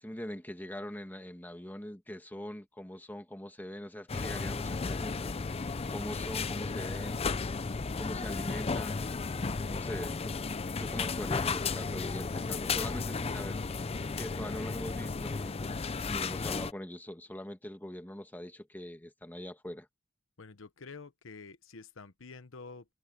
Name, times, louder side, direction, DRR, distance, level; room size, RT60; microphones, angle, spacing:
voice 1, 0.0-5.3 5.9-7.2 8.0-9.1 9.6-10.4 10.8-15.7 16.1-19.9, left 1 dB, 10° left, 1.6 m, -42 dB
sound 1, 4.1-16.7, left 4 dB, 30° left, 0.5 m, -34 dB
voice 2, 20.4-22.9, left 4 dB, 75° left, 1.0 m, -48 dB
head